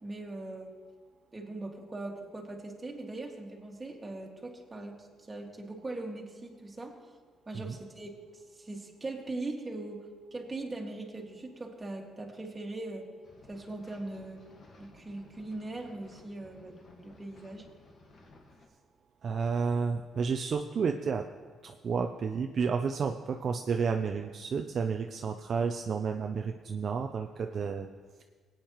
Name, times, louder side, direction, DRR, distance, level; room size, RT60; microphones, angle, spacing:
voice 1, 0.0-0.7 1.3-7.1 7.5-13.1 13.5-14.5 14.8-17.7, right 2 dB, 20° right, 0 dB, 2.0 m, -40 dB
sound 1, 13.2-18.7, left 2 dB, 55° left, 1.6 m, -57 dB
voice 2, 19.2-21.2 21.6-27.9, right 5 dB, 55° right, 5 dB, 0.5 m, -31 dB
19.5 x 8.9 x 3.1 m, 1.5 s
cardioid pair, 90°, 0 cm